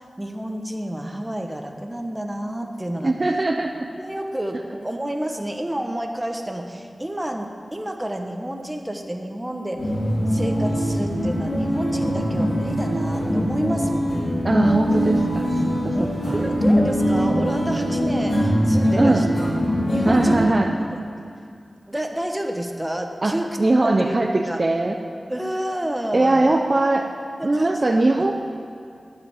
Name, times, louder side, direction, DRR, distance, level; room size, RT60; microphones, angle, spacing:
voice 1, 0.0-3.1 4.0-9.9 10.3-14.1 15.9-19.3 19.9-20.6 20.9-21.0 21.9-23.6 23.8-24.2 24.5-24.6 25.3-26.5 27.4-27.8, right 1 dB, 15° right, 3 dB, 1.1 m, -29 dB
voice 2, 3.0-3.9 14.4-16.4 19.0-19.3 20.0-20.7 23.2-25.0 26.1-27.1 27.4-28.3, right 2 dB, 45° right, 3 dB, 0.6 m, -21 dB
sound 1, 9.8-20.3, equal, 70° left, 2.6 m, -22 dB
12.0 x 5.0 x 8.5 m, 2.4 s
wide cardioid pair, 65°, 0 cm